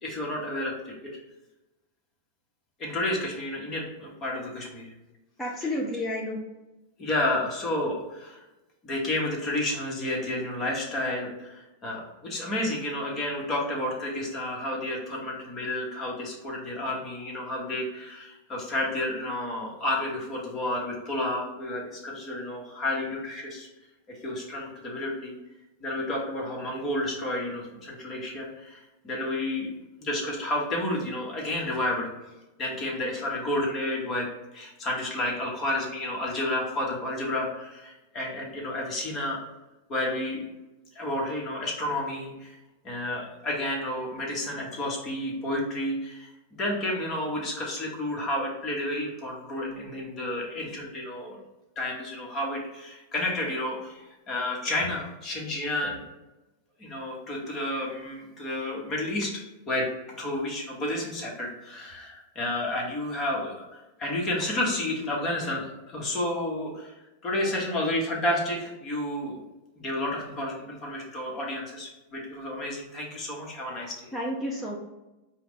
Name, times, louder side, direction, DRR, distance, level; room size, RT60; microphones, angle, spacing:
voice 1, 0.0-1.1 2.8-4.9 7.0-8.4 8.8-23.7 24.1-25.4 25.8-29.7 30.0-32.1 32.6-34.3 34.5-39.4 39.9-40.4 40.9-42.6 42.8-51.4 51.7-56.0 56.8-59.9 60.2-69.4 69.8-74.1, left 1 dB, 30° left, -2 dB, 1.4 m, -31 dB
voice 2, 5.4-6.4 74.1-74.8, left 1 dB, 5° left, -4 dB, 0.6 m, -30 dB
4.7 x 2.4 x 3.7 m, 1.0 s
hypercardioid pair, 130°, 0 cm